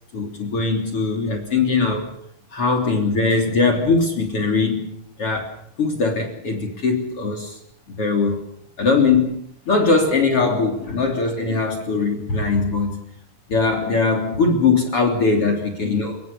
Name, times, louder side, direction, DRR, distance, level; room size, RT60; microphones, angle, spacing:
voice 1, 0.1-2.1 2.5-5.5 5.8-7.6 7.9-8.4 8.8-9.4 9.7-13.0 13.5-16.2, left 4 dB, 45° left, 2 dB, 4.1 m, -20 dB
29.5 x 19.5 x 7.2 m, 0.70 s
omnidirectional pair, 3.8 m